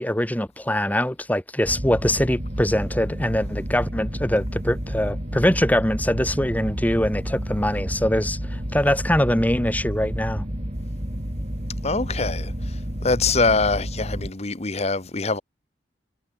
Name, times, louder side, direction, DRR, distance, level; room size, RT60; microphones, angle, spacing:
voice 1, 0.0-10.4, left 1 dB, 10° left, 3.5 m, -23 dB
sound 1, 1.6-14.3, equal, 40° right, 6.0 m, -30 dB
voice 2, 11.8-12.5 13.0-15.4, left 3 dB, 35° left, 1.5 m, -23 dB
head